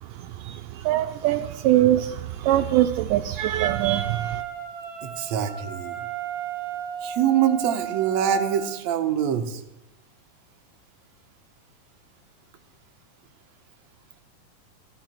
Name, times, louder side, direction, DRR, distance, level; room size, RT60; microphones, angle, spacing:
voice 1, 0.0-4.4, right 13 dB, 80° right, 7 dB, 2.1 m, -23 dB
Wind instrument woodwind instrument, 3.6-8.9, right 9 dB, 45° right, 2.8 m, -34 dB
voice 2, 5.0-6.0 7.0-9.6, right 9 dB, 65° right, 5 dB, 2.1 m, -24 dB
15.0 x 14.5 x 4.5 m, 0.89 s
omnidirectional pair, 3.9 m